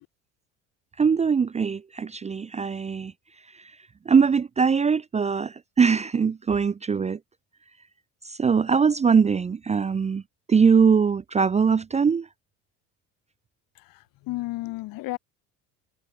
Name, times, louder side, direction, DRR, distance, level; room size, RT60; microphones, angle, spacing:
voice 1, 1.0-3.1 4.1-7.2 8.3-10.2 10.5-12.3, right 6 dB, 20° right, 0.5 m, -21 dB
voice 2, 13.7-15.2, left 19 dB, 70° left, 5.5 m, -33 dB
supercardioid pair, 80°, 35 cm